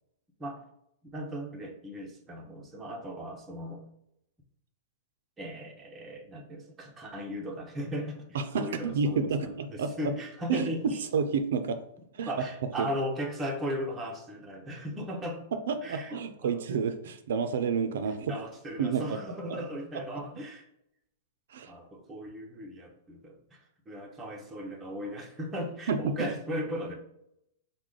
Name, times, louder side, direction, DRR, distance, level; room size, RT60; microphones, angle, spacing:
voice 1, 1.1-3.8 5.4-11.1 12.3-15.5 15.8-16.2 16.4-16.6 18.3-20.7 21.7-26.9, equal, 10° right, 0 dB, 0.6 m, -37 dB
voice 2, 8.3-9.9 10.5-11.8 12.2-12.3 12.8-12.9 15.7-18.3 18.8-19.0 19.5-19.6 21.5-21.7 25.9-26.1, right 5 dB, 70° right, 8 dB, 0.4 m, -29 dB
4.7 x 2.1 x 3.7 m, 0.78 s
supercardioid pair, 170°, 0 cm